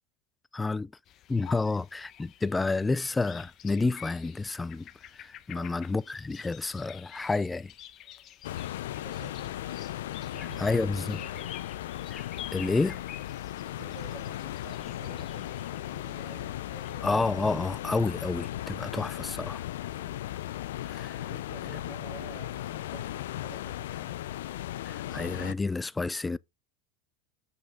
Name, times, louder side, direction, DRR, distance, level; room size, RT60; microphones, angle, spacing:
voice 1, 0.5-0.9 1.3-4.9 5.1-7.7 10.6-11.2 12.1-12.2 12.5-13.0 17.0-19.6 20.9-21.3 24.8-26.4, left 3 dB, 10° left, 0.3 m, -30 dB
sound 1, 1.1-17.2, left 11 dB, 40° left, 0.8 m, -49 dB
voice 2, 5.5-5.9 9.0-9.8 10.2-11.5 13.6-17.1 19.9-20.3 21.1-24.2, right 6 dB, 55° right, 2.1 m, -50 dB
sound 2, 8.4-25.5, left 13 dB, 80° left, 0.4 m, -37 dB
7.1 x 6.3 x 3.6 m
hypercardioid pair, 110°, 0 cm